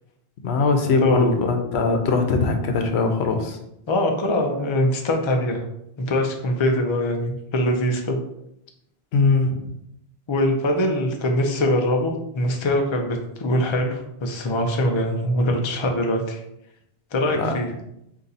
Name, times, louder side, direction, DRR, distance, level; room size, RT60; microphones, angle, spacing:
voice 1, 0.4-3.6 9.1-9.7 17.3-17.5, left 4 dB, 85° left, 4 dB, 0.9 m, -21 dB
voice 2, 3.9-5.6 6.0-8.2 10.3-16.4 17.1-17.7, left 1 dB, 35° left, 2 dB, 0.5 m, -22 dB
4.0 x 2.8 x 4.0 m, 0.79 s
omnidirectional pair, 1.1 m